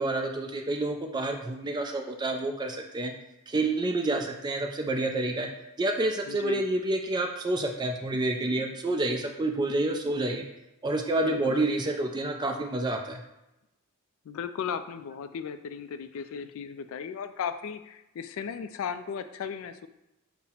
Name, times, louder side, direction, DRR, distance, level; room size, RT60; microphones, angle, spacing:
voice 1, 0.0-3.1 3.5-5.5 5.8-10.4 10.8-13.2, right 2 dB, 20° right, 3 dB, 0.3 m, -28 dB
voice 2, 6.3-6.6 11.1-11.7 14.2-19.9, left 7 dB, 65° left, 11 dB, 0.3 m, -36 dB
5.5 x 2.0 x 4.2 m, 0.93 s
head